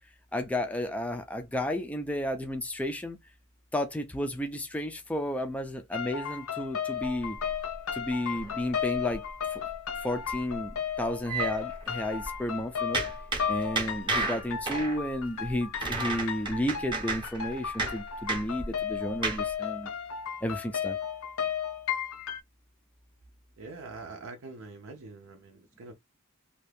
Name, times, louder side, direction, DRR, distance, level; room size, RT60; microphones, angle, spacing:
voice 1, 0.3-3.2 3.7-7.4 7.9-9.2 9.5-9.6 10.0-13.0 13.5-19.9 20.4-21.0, left 1 dB, 5° left, 0.4 m, -32 dB
sound 1, 5.9-22.4, left 8 dB, 65° left, 0.6 m, -35 dB
sound 2, 7.0-9.4 9.7-9.9 10.2-12.4 12.9-19.5, right 3 dB, 20° right, 0.7 m, -34 dB
voice 2, 23.6-25.9, right 3 dB, 65° right, 0.5 m, -44 dB
2.7 x 2.3 x 3.2 m
head